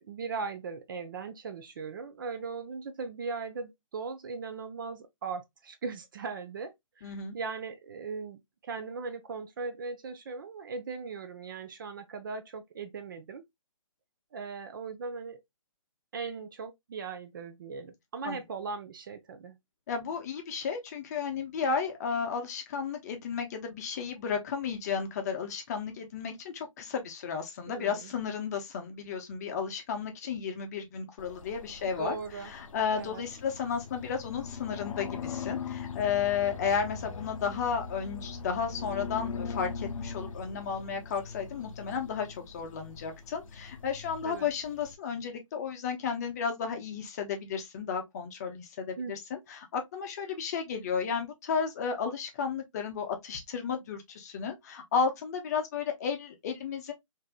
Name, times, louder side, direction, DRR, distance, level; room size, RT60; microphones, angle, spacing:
voice 1, 0.1-13.4 14.3-15.4 16.1-19.6 27.7-28.1 31.8-32.5 32.9-33.2 44.2-44.5 49.0-49.2, right 4 dB, 40° right, 0.4 m, -39 dB
voice 2, 7.0-7.4 18.2-18.4 19.9-56.9, left 6 dB, 30° left, 0.7 m, -33 dB
sound 1, 31.2-44.9, left 5 dB, 70° left, 0.6 m, -41 dB
3.3 x 2.6 x 2.3 m
hypercardioid pair, 150°, 18 cm